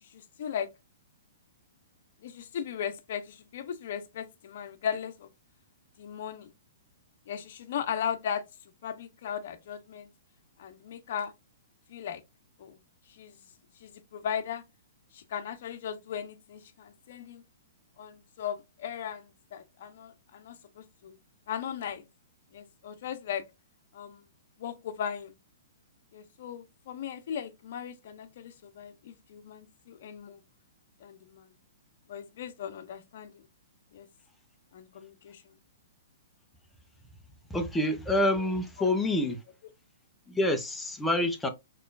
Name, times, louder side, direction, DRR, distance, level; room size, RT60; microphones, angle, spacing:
voice 1, 0.0-0.7 2.2-5.3 6.0-6.5 7.3-8.4 8.8-10.1 10.6-11.3 11.9-12.2 12.6-12.8 13.1-13.4 13.8-14.6 15.1-17.4 18.0-21.2 21.5-22.0 22.5-23.4 23.9-24.3 24.6-25.3 26.1-30.4 31.0-31.5 32.1-33.5 33.9-34.1 34.7-35.5, left 8 dB, 60° left, 0.8 m, -37 dB
voice 2, 37.5-39.4 40.3-41.5, left 1 dB, 5° left, 0.7 m, -27 dB
4.2 x 3.2 x 2.5 m
hypercardioid pair, 140°, 0 cm